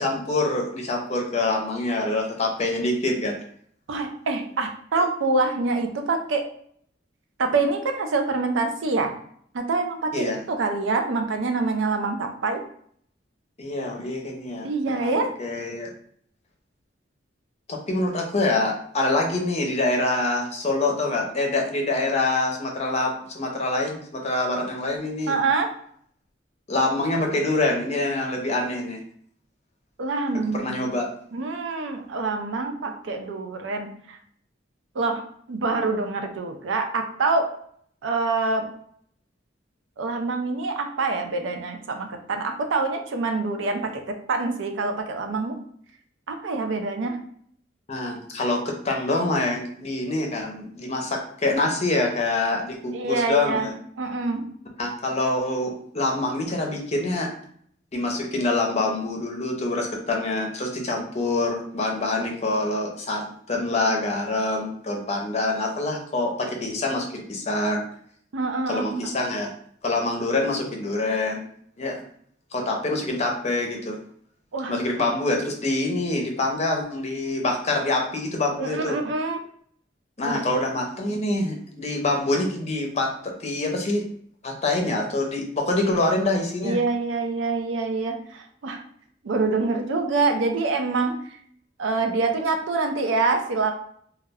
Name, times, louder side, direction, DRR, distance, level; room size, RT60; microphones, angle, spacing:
voice 1, 0.0-3.4 5.0-5.1 10.1-10.4 13.6-15.1 15.4-15.9 17.7-25.4 26.7-29.0 30.5-31.1 47.9-53.7 54.8-57.3 57.9-67.8 68.7-69.5 69.8-71.4 71.8-72.0 72.5-74.0 74.7-79.0 80.2-84.1 84.4-86.8, left 2 dB, 35° left, 1 dB, 0.5 m, -25 dB
voice 2, 3.9-6.4 7.4-9.1 9.5-12.6 14.6-15.3 25.3-25.7 30.0-31.0 31.3-34.2 35.0-35.2 35.5-37.5 38.0-38.7 40.0-45.6 46.3-47.2 52.9-53.7 54.0-54.5 68.3-69.1 74.5-74.7 78.6-79.4 80.2-80.3 86.6-88.8 89.2-91.4 91.8-93.7, right 3 dB, 85° right, 5 dB, 0.4 m, -25 dB
2.2 x 2.1 x 3.4 m, 0.62 s
head